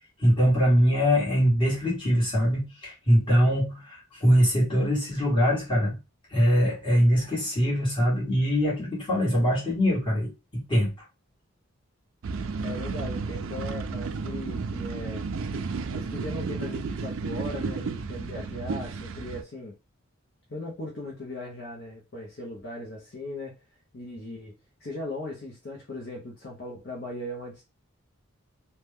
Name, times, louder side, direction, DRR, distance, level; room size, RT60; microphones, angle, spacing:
voice 1, 0.2-6.0 6.3-10.9, equal, 25° left, -5 dB, 1.5 m, -23 dB
sound 1, 12.2-19.4, right 4 dB, 65° right, 0.4 m, -32 dB
voice 2, 12.6-15.3 15.9-19.8 20.5-23.6 23.9-24.5 24.8-27.6, left 1 dB, 50° left, -2 dB, 0.7 m, -38 dB
2.8 x 2.2 x 3.4 m, 0.27 s
head